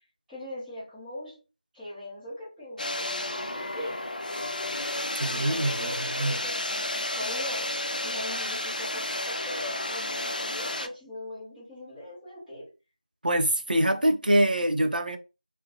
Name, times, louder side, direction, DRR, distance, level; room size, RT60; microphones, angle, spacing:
voice 1, 0.3-1.4 1.7-4.0 5.3-6.5 7.2-12.7, left 1 dB, ahead, 0.6 m, -40 dB
sound 1, 2.8-10.9, left 1 dB, 75° left, 0.4 m, -32 dB
voice 2, 5.2-6.4 13.2-15.2, right 1 dB, 80° right, 0.5 m, -25 dB
2.4 x 2.0 x 2.6 m
figure-of-eight pair, 170°, 5 cm